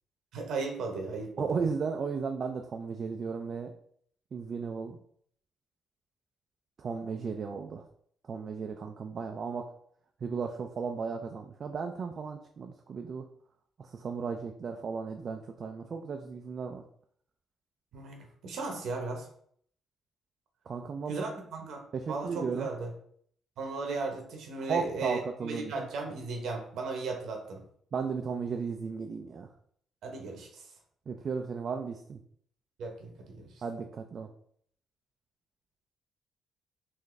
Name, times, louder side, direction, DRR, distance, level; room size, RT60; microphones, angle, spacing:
voice 1, 0.3-1.6 17.9-19.3 21.1-21.8 22.1-22.9 23.6-27.6 30.0-30.7 32.8-33.6, right 3 dB, 75° right, 2 dB, 0.8 m, -36 dB
voice 2, 1.4-3.7 4.3-5.0 6.8-7.8 8.3-9.7 10.2-13.3 13.8-16.8 20.7-21.2 21.9-22.7 24.7-25.7 27.9-29.5 31.1-32.2 33.6-34.3, right 5 dB, 50° right, 4 dB, 0.3 m, -35 dB
3.8 x 2.6 x 3.2 m, 0.62 s
cardioid pair, 90°, 0 cm